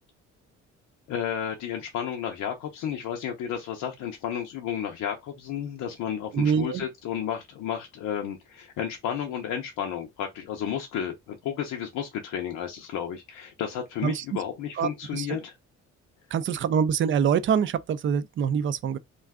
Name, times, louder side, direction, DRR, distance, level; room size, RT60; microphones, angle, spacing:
voice 1, 1.1-15.5, left 9 dB, 85° left, 0.6 m, -32 dB
voice 2, 6.3-6.9 14.0-14.4 14.8-15.3 16.3-19.0, right 7 dB, 40° right, 0.4 m, -25 dB
2.4 x 2.3 x 3.4 m
cardioid pair, 90°, 30 cm